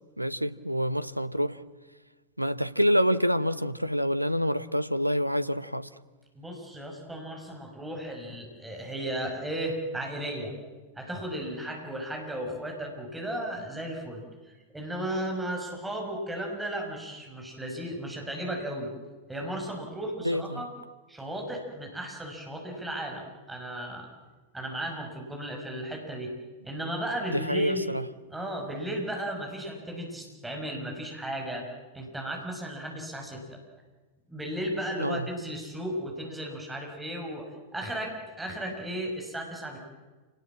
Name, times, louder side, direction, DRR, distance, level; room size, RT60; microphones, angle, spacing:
voice 1, 0.2-1.6 2.4-5.9 20.2-20.6 27.3-28.0 35.0-35.3, equal, 90° right, 0.8 m, -27 dB
voice 2, 6.4-10.5 11.0-18.9 19.3-20.7 21.1-24.1 24.5-26.4 26.6-27.9 28.3-31.7 31.9-33.6 34.3-39.8, right 1 dB, 10° right, 6.1 m, -35 dB
28.5 x 19.5 x 7.5 m
figure-of-eight pair, 90°, 0 cm